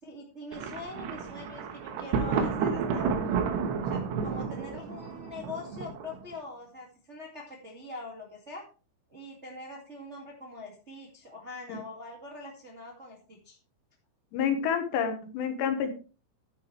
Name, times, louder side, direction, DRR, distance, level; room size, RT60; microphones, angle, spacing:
voice 1, 0.0-3.4 3.8-8.6 9.1-13.6, left 2 dB, 40° right, -1 dB, 0.9 m, -43 dB
Thunder, 0.5-6.3, right 6 dB, 70° right, 3.2 m, -31 dB
voice 2, 14.3-15.9, left 7 dB, 75° left, 6 dB, 3.3 m, -28 dB
11.0 x 10.0 x 3.3 m, 0.35 s
omnidirectional pair, 5.3 m